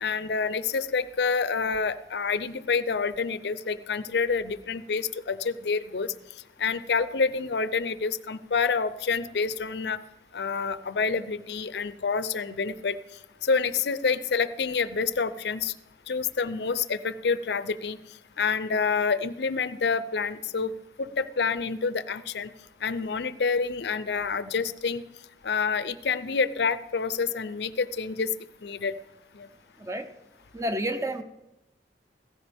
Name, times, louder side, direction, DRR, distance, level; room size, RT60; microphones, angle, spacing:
voice 1, 0.0-6.1 6.6-10.0 10.3-13.0 13.4-15.7 16.1-18.0 18.4-20.7 21.0-22.5 22.8-25.0 25.4-28.3 28.6-28.9 29.3-29.5, left 5 dB, 70° left, 15 dB, 0.6 m, -28 dB
voice 2, 30.5-31.2, right 1 dB, 15° right, 9 dB, 0.7 m, -30 dB
16.5 x 15.0 x 3.5 m, 0.97 s
head